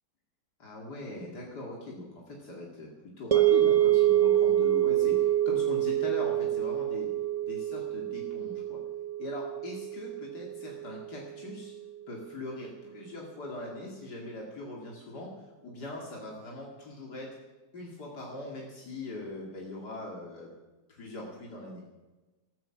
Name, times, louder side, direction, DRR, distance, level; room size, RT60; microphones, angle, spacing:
voice 1, 0.6-2.9 3.2-7.1 7.4-8.8 9.2-11.7 12.1-15.3 15.6-17.3 17.7-20.5 20.9-21.8, left 2 dB, 85° left, -2 dB, 3.0 m, -41 dB
sound 1, 3.3-11.6, right 12 dB, 25° right, 0.9 m, -26 dB
15.5 x 14.0 x 5.9 m, 1.2 s
omnidirectional pair, 1.7 m